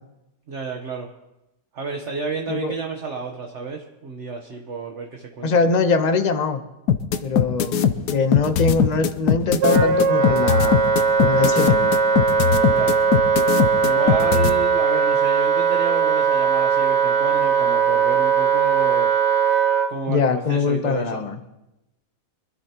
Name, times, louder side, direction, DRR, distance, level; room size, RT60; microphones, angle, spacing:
voice 1, 0.5-1.1 1.7-5.6 12.7-12.9 13.8-19.1 19.9-21.2, right 4 dB, 45° right, 2 dB, 1.3 m, -31 dB
voice 2, 5.4-6.6 7.2-7.8 8.1-10.9 11.2-11.9 20.1-21.4, left 4 dB, 35° left, 6 dB, 0.7 m, -22 dB
sound 1, 6.9-14.5, left 8 dB, 75° left, 1.3 m, -19 dB
Wind instrument woodwind instrument, 9.6-19.9, right 6 dB, 75° right, 1.5 m, -19 dB
25.5 x 12.5 x 2.9 m, 0.94 s
omnidirectional pair, 1.8 m